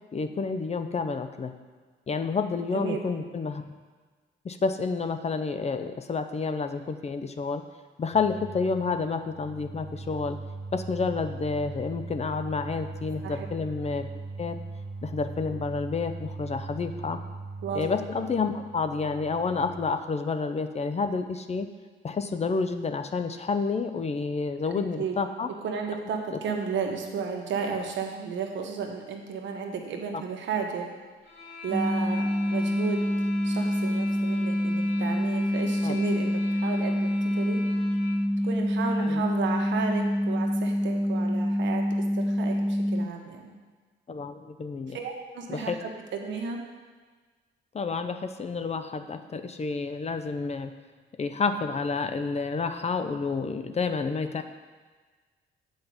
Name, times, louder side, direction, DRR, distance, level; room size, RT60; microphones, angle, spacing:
voice 1, 0.1-1.5 2.1-3.6 4.4-7.6 8.0-10.4 10.7-14.1 14.4-14.6 15.0-17.2 17.7-21.7 22.0-25.5 26.3-26.4 30.1-30.2 35.8-36.0 39.0-39.2 44.1-45.0 45.5-45.8 47.7-50.7 51.2-54.4, left 4 dB, 35° left, 9 dB, 0.6 m, -29 dB
voice 2, 2.7-3.1 13.2-13.5 17.6-17.8 24.7-25.2 25.6-30.9 31.6-33.0 33.4-37.6 38.4-41.8 42.1-43.6 44.9-46.6, right 5 dB, 70° right, 2 dB, 1.4 m, -33 dB
sound 1, 8.1-19.9, right 3 dB, 50° right, 1.3 m, -40 dB
sound 2, 31.2-38.3, left 4 dB, 60° left, 3.2 m, -42 dB
sound 3, 31.7-43.1, equal, 10° right, 0.3 m, -26 dB
8.0 x 5.2 x 7.1 m, 1.4 s
cardioid pair, 90°, 20 cm